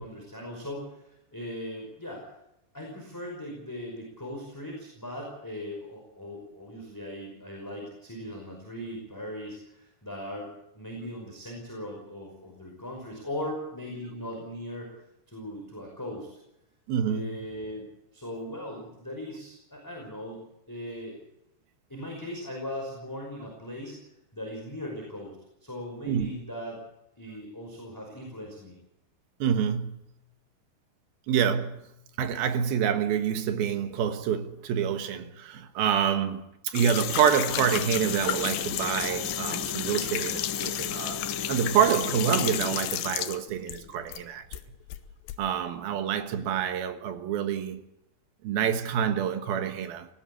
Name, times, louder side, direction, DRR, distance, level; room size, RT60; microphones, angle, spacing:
voice 1, 0.0-2.3 2.7-14.9 15.3-16.4 17.0-17.9 18.1-21.2 21.9-24.0 24.3-26.8 27.2-28.8, left 1 dB, 5° left, 4.7 m, -39 dB
voice 2, 16.9-17.3 26.1-26.3 29.4-30.0 31.3-31.9 32.2-41.2 41.5-44.5 45.4-47.8 48.4-50.1, right 8 dB, 70° right, 3.0 m, -27 dB
sound 1, 36.7-44.2 44.5-45.4, left 13 dB, 80° left, 3.2 m, -32 dB
sound 2, 37.5-42.8, left 5 dB, 45° left, 1.7 m, -37 dB
19.0 x 17.0 x 8.4 m
omnidirectional pair, 5.0 m